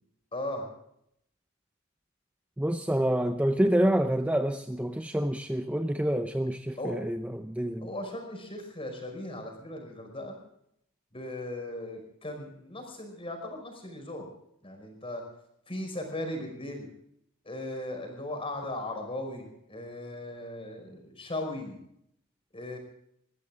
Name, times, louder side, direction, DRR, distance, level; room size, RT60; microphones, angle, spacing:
voice 1, 0.3-0.7 6.8-7.0 7.8-10.4 11.1-14.3 14.6-15.2 15.7-16.9 17.5-21.8 22.5-22.8, left 1 dB, 25° left, 5.3 m, -37 dB
voice 2, 2.6-7.9, right 1 dB, 5° right, 0.5 m, -27 dB
22.0 x 15.0 x 3.6 m
head